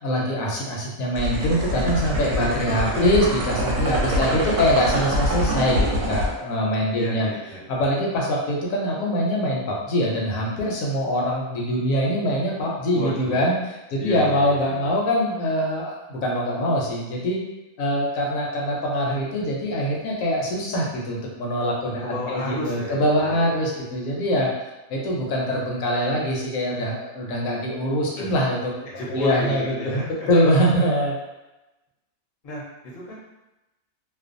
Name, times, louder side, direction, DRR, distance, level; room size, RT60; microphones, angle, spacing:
voice 1, 0.0-7.3 7.7-13.5 13.9-17.4 17.8-28.7 29.1-31.1, equal, 75° left, -3 dB, 0.9 m, -23 dB
sound 1, 1.1-6.3, equal, 65° right, 0.8 m, -25 dB
voice 2, 4.1-4.6 6.9-7.6 12.9-13.5 14.0-14.9 22.0-23.6 28.1-28.3 28.9-30.3 32.4-33.2, left 1 dB, 40° left, -6 dB, 0.6 m, -32 dB
2.4 x 2.1 x 2.5 m, 1.0 s
omnidirectional pair, 1.5 m